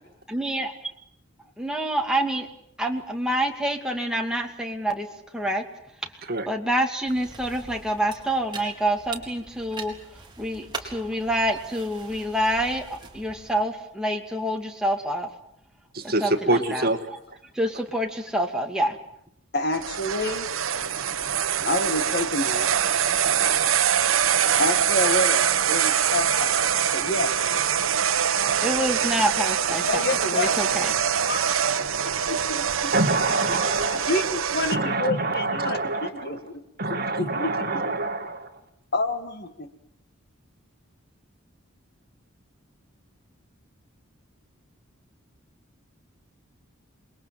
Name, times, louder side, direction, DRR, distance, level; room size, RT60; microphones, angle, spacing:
voice 1, 0.3-0.7 1.6-2.5 2.8-5.1 5.3-5.6 6.5-9.9 10.4-15.3 16.0-16.9 17.6-19.0 28.6-30.0 30.3-30.9, right 1 dB, 5° right, 2 dB, 2.5 m, -27 dB
sound 1, 7.1-13.6, right 4 dB, 20° right, 4.2 m, -42 dB
voice 2, 15.9-17.1 32.9-34.2 34.7-36.4 36.8-38.5, right 2 dB, 45° right, 8 dB, 2.0 m, -26 dB
voice 3, 19.5-20.5 21.7-22.7 24.6-27.5 29.9-30.6 31.3-31.6 32.3-32.9 33.5-33.6 33.9-36.6 36.9-38.0 38.9-39.7, left 2 dB, 50° left, 9 dB, 2.0 m, -28 dB
sound 2, 19.7-34.8, right 8 dB, 75° right, 1.1 m, -24 dB
28.0 x 21.5 x 7.7 m, 0.73 s
head